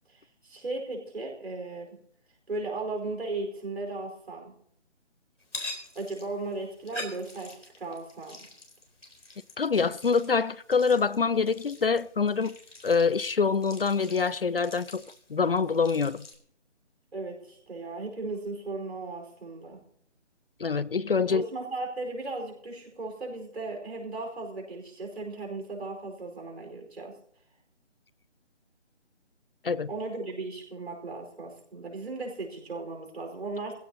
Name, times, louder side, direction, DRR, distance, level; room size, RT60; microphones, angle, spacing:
voice 1, 0.1-2.0 2.5-4.5 5.9-8.4 17.1-19.8 21.3-27.1 29.9-33.7, right 3 dB, 60° right, 4.8 m, -36 dB
sound 1, 5.4-16.4, left 2 dB, 90° left, 4.4 m, -45 dB
voice 2, 9.6-12.6 12.8-15.0 15.3-16.2 20.6-21.4 29.6-29.9, left 5 dB, 55° left, 0.4 m, -25 dB
18.5 x 16.0 x 2.9 m
figure-of-eight pair, 160°, 35 cm